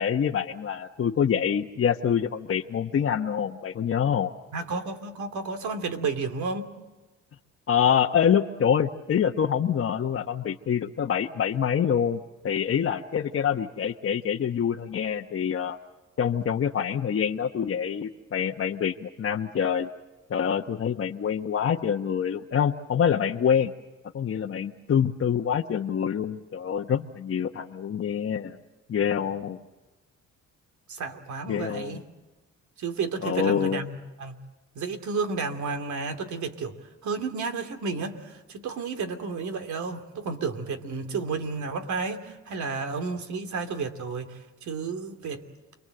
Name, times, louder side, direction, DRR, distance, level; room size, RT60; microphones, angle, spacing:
voice 1, 0.0-4.3 7.7-15.8 16.2-19.9 20.3-23.7 24.1-28.6 28.9-29.6 31.5-32.0 33.2-33.8, left 8 dB, 45° left, 1 dB, 1.1 m, -26 dB
voice 2, 4.5-6.7 30.9-32.0 32.8-34.4 34.7-36.8 37.0-45.4, right 4 dB, 70° right, 7 dB, 2.8 m, -32 dB
29.5 x 22.5 x 7.8 m, 1.1 s
cardioid pair, 90°, 30 cm